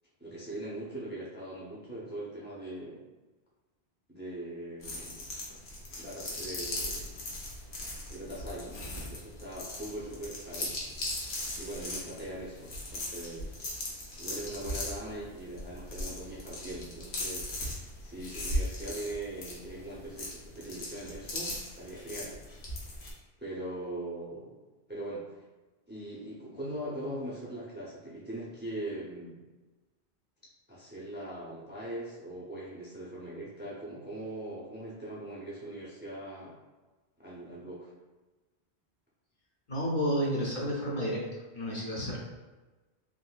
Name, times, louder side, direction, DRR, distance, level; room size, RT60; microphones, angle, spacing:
voice 1, 0.2-3.1 4.1-5.2 5.9-7.1 8.1-10.8 11.6-13.5 14.2-17.5 18.0-22.4 23.4-24.6 24.9-25.4 25.9-29.4 30.7-36.6 37.2-37.9, right 1 dB, 10° right, -6 dB, 0.5 m, -41 dB
sound 1, 4.8-23.1, left 1 dB, 75° left, 1.0 m, -38 dB
voice 2, 39.7-41.2 41.5-42.2, equal, 50° left, -5 dB, 0.8 m, -31 dB
3.6 x 2.6 x 2.3 m, 1.2 s
omnidirectional pair, 1.1 m